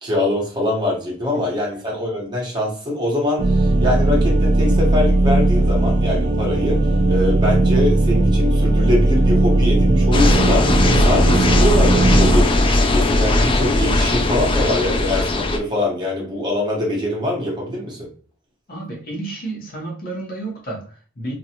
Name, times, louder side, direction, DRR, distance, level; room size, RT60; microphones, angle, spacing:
voice 1, 0.0-6.8 7.1-18.1, left 1 dB, 25° right, 1.0 m, -23 dB
sound 1, 3.4-12.4, right 2 dB, 60° right, 0.4 m, -17 dB
sound 2, 10.1-15.6, left 2 dB, 25° left, 0.3 m, -18 dB
voice 2, 18.7-21.3, right 2 dB, 50° left, 0.9 m, -31 dB
2.7 x 2.3 x 2.8 m
head